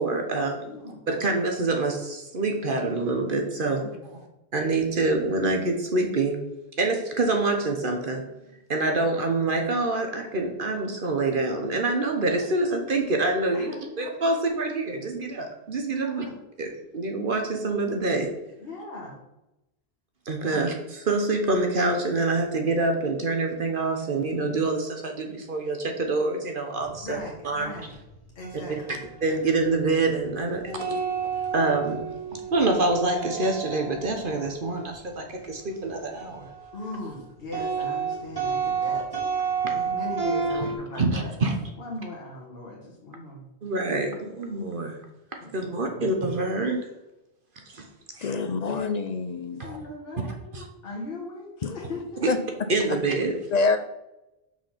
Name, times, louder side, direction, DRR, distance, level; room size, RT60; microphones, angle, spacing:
voice 1, 0.0-0.7 1.1-4.2 4.5-6.4 6.8-8.2 8.7-13.7 14.0-16.3 16.6-18.3 20.3-20.7 21.0-27.2 27.4-27.7 28.7-28.8 29.2-31.0 31.5-32.0 32.3-36.5 39.6-39.7 41.0-41.5 43.6-45.0 45.5-46.9 47.7-47.9 48.2-48.3 49.6-49.8 50.5-50.7 52.2-52.3 52.7-53.4, right 3 dB, 55° right, 4 dB, 1.1 m, -26 dB
voice 2, 0.7-1.1 3.7-4.1 12.2-12.4 13.5-14.0 16.0-16.4 18.6-19.2 20.5-20.6 27.0-28.0 28.3-29.0 36.7-39.1 39.7-43.4 45.4-46.1 49.5-52.3, left 2 dB, 70° left, -3 dB, 1.6 m, -39 dB
sound 1, 26.8-36.9 37.2-40.8, right 5 dB, 20° right, 1.3 m, -31 dB
voice 3, 48.2-49.6 51.6-51.7 52.3-52.4 53.5-53.8, left 4 dB, 50° left, 9 dB, 0.5 m, -25 dB
6.1 x 4.8 x 5.7 m, 0.94 s
omnidirectional pair, 1.1 m